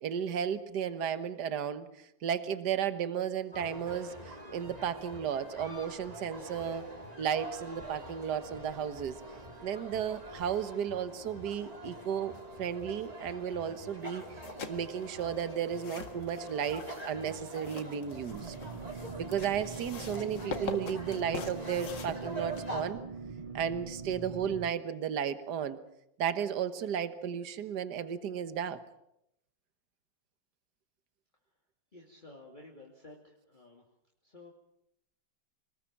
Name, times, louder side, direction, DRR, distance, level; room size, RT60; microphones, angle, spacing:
voice 1, 0.0-1.9 2.2-6.8 7.2-9.2 9.6-14.2 14.7-18.5 19.2-23.0 23.5-25.8 26.2-28.8, right 8 dB, 60° right, 11 dB, 1.8 m, -34 dB
sound 1, 3.5-22.9, right 1 dB, 20° right, 3.6 m, -45 dB
sound 2, 14.3-22.9, left 4 dB, 70° left, 2.5 m, -44 dB
sound 3, 18.3-24.7, right 5 dB, 40° right, 0.5 m, -43 dB
voice 2, 31.9-33.8 34.2-34.5, left 2 dB, 25° left, -1 dB, 2.7 m, -52 dB
26.5 x 19.5 x 7.4 m, 0.81 s
omnidirectional pair, 2.0 m